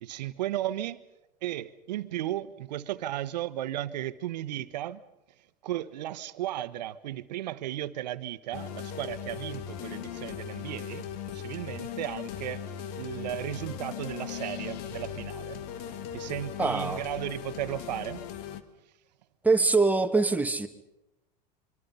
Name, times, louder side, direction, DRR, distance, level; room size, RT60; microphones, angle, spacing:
voice 1, 0.0-1.0 1.4-5.0 5.6-12.6 13.0-15.6 16.1-18.2, right 13 dB, 80° right, 1.2 m, -35 dB
sound 1, 8.5-18.6, left 9 dB, 65° left, 1.8 m, -38 dB
voice 2, 16.6-17.0 19.4-20.7, right 3 dB, 5° right, 1.8 m, -23 dB
26.0 x 24.0 x 5.6 m
hypercardioid pair, 100°, 21 cm